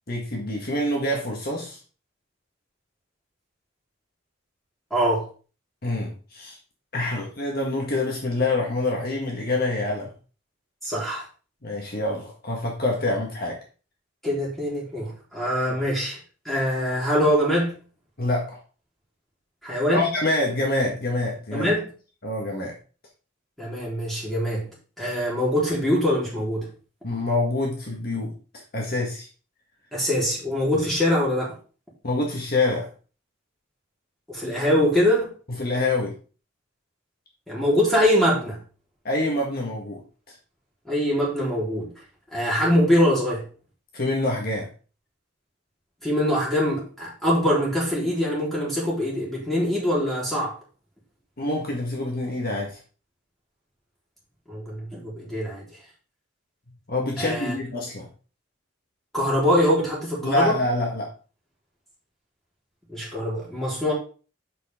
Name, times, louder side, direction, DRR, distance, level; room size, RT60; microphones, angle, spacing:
voice 1, 0.1-1.8 5.8-6.6 6.9-10.1 11.6-13.6 18.2-18.6 19.9-21.7 22.2-22.8 27.0-29.3 32.0-32.9 35.5-36.1 39.0-40.0 40.3-40.4 43.9-44.7 51.4-52.8 56.9-58.1 60.2-61.1, left 2 dB, 50° left, 0 dB, 1.6 m, -26 dB
voice 2, 4.9-5.2 10.8-11.2 14.2-16.2 16.5-17.8 19.6-20.1 21.5-21.9 23.6-24.6 25.0-26.7 29.9-31.5 34.3-35.3 37.5-38.6 40.9-41.9 42.3-43.4 46.0-50.6 54.5-55.7 57.2-57.5 59.1-60.6 62.9-63.9, equal, ahead, -6 dB, 3.9 m, -23 dB
7.6 x 6.3 x 3.7 m, 0.37 s
head